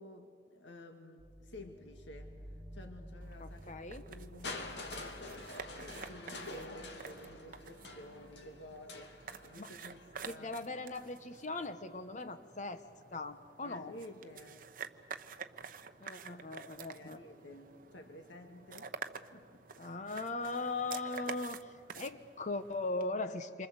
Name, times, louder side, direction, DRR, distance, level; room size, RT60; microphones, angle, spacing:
voice 1, 0.0-3.8 4.1-9.2 9.4-10.6 13.6-14.6 16.9-19.0 19.3-19.7, left 1 dB, 85° left, 5 dB, 1.9 m, -52 dB
sound 1, 1.2-11.0, equal, 5° right, 7.2 m, -54 dB
sound 2, 3.2-23.1, right 5 dB, 50° right, 1.0 m, -50 dB
voice 2, 3.4-4.0 9.6-9.7 10.3-12.8 13.1-13.9 16.0-17.2 19.8-23.7, left 3 dB, 40° left, 10 dB, 1.0 m, -39 dB
Crushing, 4.4-10.3 11.3-11.4, left 2 dB, 70° left, 2.7 m, -46 dB
28.0 x 25.0 x 8.0 m, 2.2 s
head